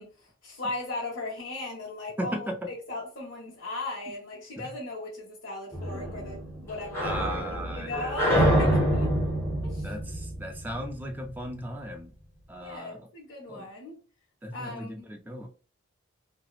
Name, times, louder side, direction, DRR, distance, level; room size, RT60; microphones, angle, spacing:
voice 1, 0.0-2.5 2.9-9.1 9.6-9.9 12.6-14.0 14.5-14.9, left 2 dB, 75° left, 1.0 m, -37 dB
voice 2, 2.2-2.6 4.6-4.7 7.0-8.2 8.7-8.9 9.8-12.1 12.5-13.0 13.5-13.7 14.4-15.5, equal, 10° right, 0.3 m, -37 dB
sound 1, 5.7-11.2, equal, 15° left, 0.8 m, -27 dB
2.9 x 2.0 x 2.3 m
head